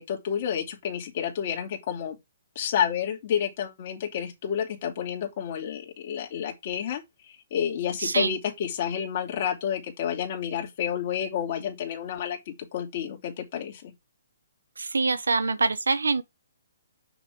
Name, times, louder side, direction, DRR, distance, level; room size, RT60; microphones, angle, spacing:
voice 1, 0.0-2.2 2.5-13.9, left 8 dB, 45° left, 2.6 m, -30 dB
voice 2, 8.0-8.3 14.8-16.2, right 4 dB, 90° right, 0.8 m, -25 dB
6.1 x 6.0 x 3.6 m
hypercardioid pair, 145°, 0 cm